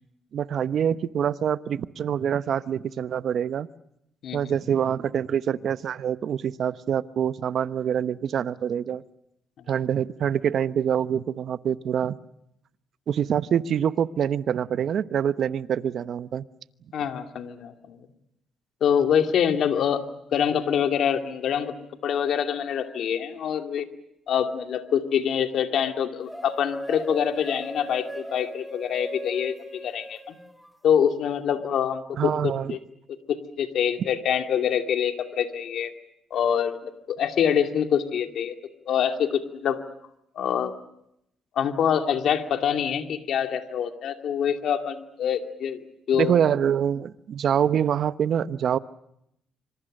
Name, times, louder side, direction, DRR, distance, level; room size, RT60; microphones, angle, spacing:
voice 1, 0.3-3.7 4.3-9.0 9.7-12.1 13.1-16.4 32.2-32.7 46.1-48.8, right 8 dB, 65° right, 14 dB, 1.0 m, -25 dB
voice 2, 16.9-18.0 18.8-21.8 22.0-23.9 24.3-30.4 30.8-32.8 33.3-35.9 36.3-38.6 38.9-39.8 40.4-40.7 41.6-45.8 46.1-46.3, left 8 dB, 70° left, 6 dB, 2.5 m, -25 dB
sound 1, 26.3-30.8, equal, ahead, 2.3 m, -38 dB
26.5 x 26.0 x 6.6 m, 0.79 s
cardioid pair, 90°, 0 cm